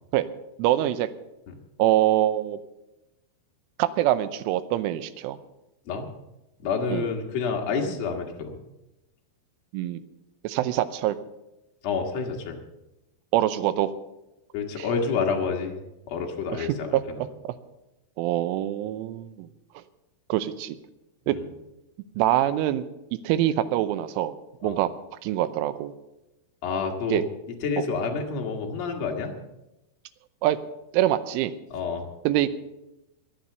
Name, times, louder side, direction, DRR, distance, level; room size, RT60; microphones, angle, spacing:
voice 1, 0.6-1.1 1.8-2.6 3.8-5.4 6.9-7.1 9.7-10.0 10.4-11.2 13.3-13.9 14.8-14.9 16.6-16.7 16.9-17.5 18.2-19.5 20.3-20.8 21.3-21.4 22.2-22.8 23.1-24.4 24.6-24.9 25.2-25.9 27.1-27.2 27.8-27.9 30.4-30.6 30.9-31.6 32.3-32.5, right 13 dB, 85° right, 14 dB, 3.2 m, -24 dB
voice 2, 6.6-8.6 11.8-12.6 14.5-15.8 16.1-17.2 21.3-21.5 24.6-24.8 26.6-27.2 27.6-29.3 31.7-32.1, left 5 dB, 65° left, 1 dB, 1.7 m, -29 dB
22.0 x 7.3 x 6.8 m, 0.94 s
omnidirectional pair, 5.6 m